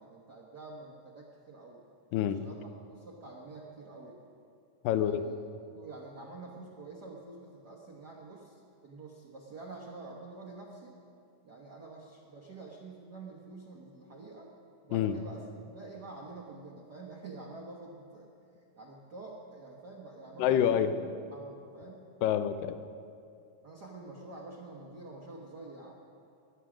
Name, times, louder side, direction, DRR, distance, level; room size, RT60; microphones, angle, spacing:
voice 1, 0.0-1.8 2.3-4.2 4.9-5.4 5.7-11.0 11.4-14.5 14.8-18.3 18.7-21.0 21.3-22.0 23.6-25.9, right 3 dB, 75° right, -1 dB, 0.9 m, -47 dB
voice 2, 4.8-5.2 14.9-15.2 20.4-21.0 22.2-22.8, left 10 dB, 85° left, 10 dB, 2.3 m, -27 dB
16.5 x 11.5 x 6.2 m, 2.5 s
omnidirectional pair, 3.9 m